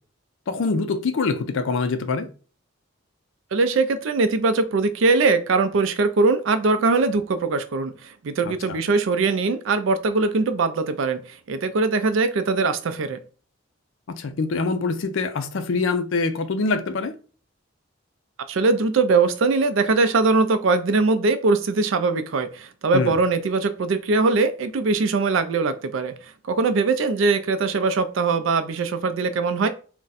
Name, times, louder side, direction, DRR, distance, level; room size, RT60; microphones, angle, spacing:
voice 1, 0.5-2.3 8.4-8.5 14.2-17.1 22.9-23.1, left 4 dB, 65° left, 0.4 m, -24 dB
voice 2, 3.5-13.2 18.5-26.1 26.4-29.7, right 3 dB, 70° right, 0.4 m, -21 dB
2.5 x 2.2 x 3.9 m
head